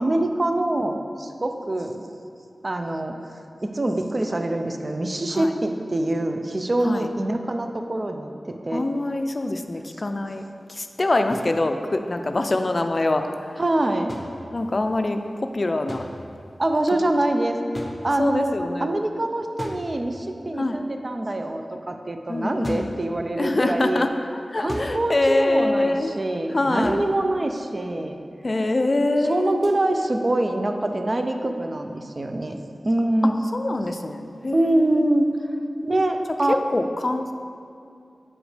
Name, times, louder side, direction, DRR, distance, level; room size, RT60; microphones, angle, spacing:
voice 1, 0.0-2.0 2.6-3.1 3.6-8.8 13.6-14.1 16.6-17.6 18.0-18.5 18.8-24.1 24.6-28.2 29.3-32.6 32.8-33.4 34.5-35.3 35.8-36.6, right 1 dB, 45° right, 5 dB, 0.5 m, -24 dB
voice 2, 8.7-10.4 10.7-13.6 14.5-16.0 18.2-19.0 20.6-20.8 22.3-22.9 23.4-26.1 26.5-27.0 28.4-29.5 33.5-35.1 36.5-37.3, left 2 dB, 50° left, 6 dB, 0.4 m, -24 dB
sound 1, 11.3-11.6 14.1-14.9 15.9-16.5 17.7-18.5 19.6-20.4 22.6-23.1 24.7-25.2 26.8-27.3 29.6-29.8, left 1 dB, 25° left, 0.8 m, -37 dB
8.4 x 5.0 x 3.2 m, 2.5 s
cardioid pair, 45°, 0 cm